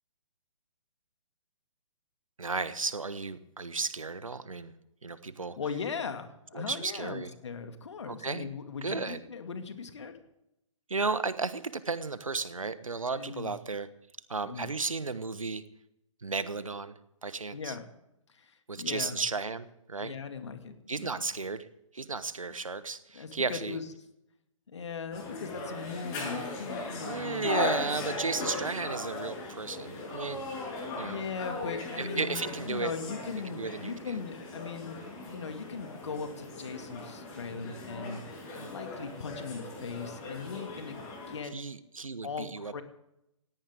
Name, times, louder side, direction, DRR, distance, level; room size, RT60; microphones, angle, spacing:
voice 1, 2.4-4.7 5.0-5.6 6.5-7.3 8.1-8.5 8.8-9.2 10.9-13.9 14.3-15.6 16.2-16.9 17.2-17.7 18.7-20.1 20.9-21.7 21.9-23.8 27.0-30.4 31.0-31.2 32.0-32.9 33.5-34.2 38.5-38.7 41.5-42.8, right 4 dB, 75° right, 14 dB, 1.3 m, -34 dB
voice 2, 5.6-10.2 13.1-13.5 14.4-14.7 17.5-17.8 18.3-19.2 20.0-21.2 23.1-23.9 24.7-27.7 28.5-28.7 31.0-38.2 38.6-41.6 42.2-42.8, left 5 dB, 55° left, 8 dB, 2.2 m, -39 dB
sound 1, 25.1-41.4, left 2 dB, 25° left, 7.3 m, -38 dB
19.0 x 17.0 x 3.6 m, 0.84 s
figure-of-eight pair, 130°, 17 cm